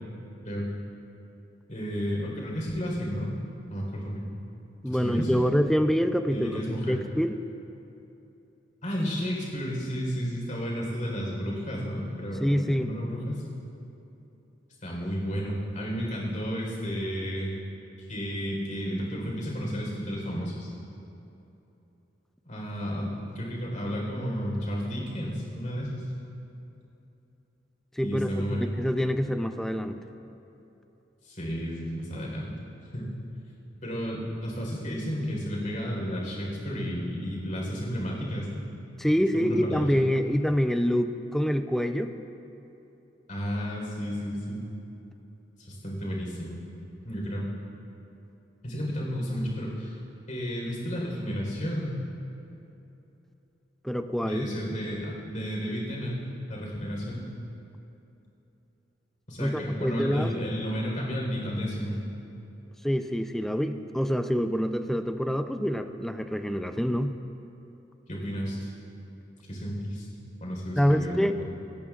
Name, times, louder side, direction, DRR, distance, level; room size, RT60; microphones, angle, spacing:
voice 1, 1.7-3.3 3.7-4.3 4.9-5.4 6.3-7.0 8.8-13.4 14.8-17.5 18.1-20.7 22.4-26.1 28.0-28.7 31.2-32.5 32.9-33.1 33.8-38.6 39.3-39.9 43.3-44.6 45.6-46.6 47.0-47.5 48.6-50.0 50.3-52.0 54.2-57.3 59.3-61.9 68.1-68.7 69.5-70.1 70.4-71.4, equal, 40° left, -2 dB, 4.0 m, -32 dB
voice 2, 4.8-6.5 6.9-7.4 12.4-12.9 28.0-28.3 28.6-30.0 39.0-42.1 53.8-54.5 59.4-60.3 62.8-67.1 70.8-71.4, equal, ahead, 8 dB, 0.5 m, -26 dB
28.0 x 14.0 x 2.5 m, 2.9 s
head